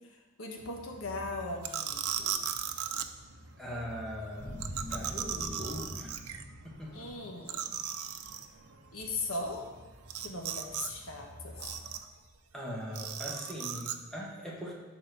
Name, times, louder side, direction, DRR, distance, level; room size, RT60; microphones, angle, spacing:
voice 1, 0.4-2.4 6.9-7.8 8.9-9.7 10.2-11.7, left 2 dB, 70° left, 1 dB, 1.4 m, -39 dB
sound 1, 0.6-12.0, equal, 50° right, 1.1 m, -53 dB
sound 2, 1.6-3.1 4.6-6.4 6.8-6.9 7.1-7.2 7.5-8.5 10.1-10.9 11.2-12.2 13.0-14.0, right 9 dB, 85° right, 0.7 m, -36 dB
voice 2, 3.6-6.1 6.6-7.3 12.5-14.7, equal, ahead, -5 dB, 1.7 m, -41 dB
sound 3, 4.4-7.3 7.5-7.6, equal, 25° left, 2.0 m, -43 dB
11.5 x 4.3 x 6.9 m, 1.3 s
head